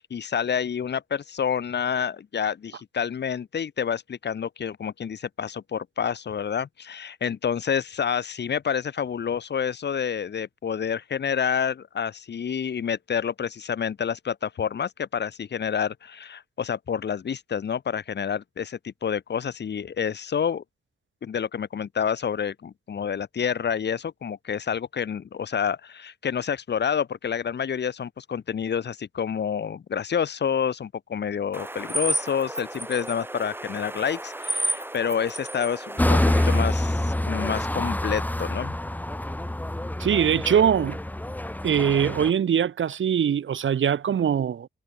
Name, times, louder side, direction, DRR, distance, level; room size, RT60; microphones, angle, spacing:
voice 1, 0.0-20.6 21.2-38.7, left 7 dB, 55° left, 1.1 m, -28 dB
sound 1, 31.5-36.6, right 1 dB, 10° right, 3.2 m, -32 dB
sound 2, 36.0-42.3, left 1 dB, 10° left, 1.7 m, -26 dB
voice 2, 40.0-41.0 41.6-44.7, right 8 dB, 70° right, 1.1 m, -22 dB
wide cardioid pair, 120°, 20 cm